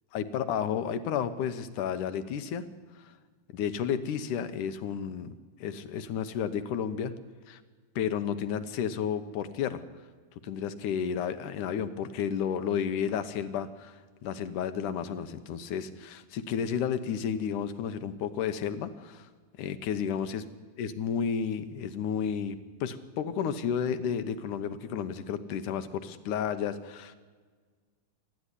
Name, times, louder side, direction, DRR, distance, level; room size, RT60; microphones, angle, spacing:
voice 1, 0.1-2.7 3.5-5.3 5.6-7.1 7.5-7.6 8.0-9.8 10.4-19.3 19.6-20.4 20.8-27.2, left 8 dB, 70° left, 11 dB, 2.3 m, -32 dB
28.5 x 12.0 x 10.0 m, 1.5 s
omnidirectional pair, 4.3 m